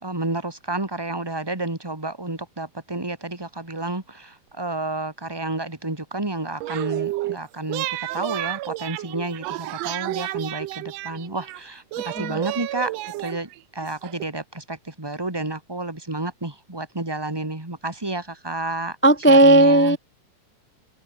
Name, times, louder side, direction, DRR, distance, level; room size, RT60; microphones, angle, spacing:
voice 1, 0.0-19.0 19.3-20.0, right 2 dB, 10° right, 2.7 m, -30 dB
sound 1, 6.6-7.4 7.7-11.6 11.9-14.2, right 17 dB, 80° right, 1.4 m, -31 dB
voice 2, 19.0-20.0, right 2 dB, 15° left, 0.4 m, -14 dB
open air
omnidirectional pair, 3.7 m